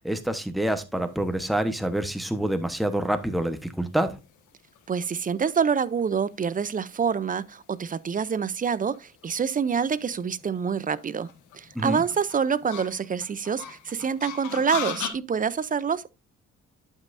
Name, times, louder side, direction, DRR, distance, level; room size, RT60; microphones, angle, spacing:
voice 1, 0.0-4.2 11.7-12.0, right 1 dB, ahead, 1.0 m, -27 dB
sound 1, 1.2-15.1, left 8 dB, 80° left, 1.4 m, -41 dB
voice 2, 4.9-11.3 11.5-16.1, right 6 dB, 30° right, 0.5 m, -26 dB
11.5 x 5.5 x 2.5 m
cardioid pair, 90°, 30 cm